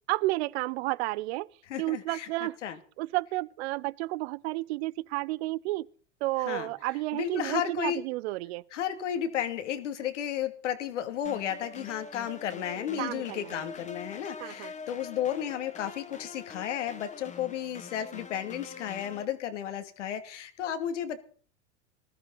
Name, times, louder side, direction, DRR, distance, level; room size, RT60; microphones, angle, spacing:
voice 1, 0.1-1.5 1.8-2.6 3.0-5.9 6.2-8.6 13.0-13.7 14.4-14.7, right 20 dB, 60° right, 0.7 m, -31 dB
voice 2, 1.7-2.8 6.5-6.7 7.1-8.0 8.7-21.2, left 10 dB, 80° left, 2.6 m, -33 dB
sound 1, 11.2-19.2, left 4 dB, 20° left, 2.1 m, -44 dB
20.0 x 14.5 x 4.1 m
hypercardioid pair, 100°, 36 cm